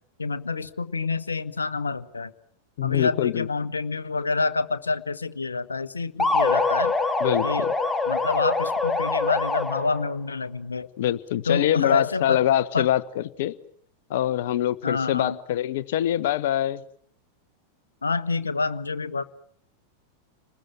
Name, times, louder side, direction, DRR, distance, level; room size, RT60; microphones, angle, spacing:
voice 1, 0.2-2.3 2.8-6.9 7.4-7.7 8.1-10.9 11.5-12.4 12.7-12.9 14.8-15.4 18.0-19.2, left 4 dB, 75° left, 13 dB, 1.1 m, -27 dB
voice 2, 2.8-3.5 7.2-7.7 11.0-13.5 14.1-16.8, left 12 dB, 55° left, 16 dB, 1.2 m, -24 dB
sound 1, 6.2-10.1, left 3 dB, 10° left, 1.7 m, -24 dB
30.0 x 20.5 x 9.0 m, 0.67 s
figure-of-eight pair, 90°, 0 cm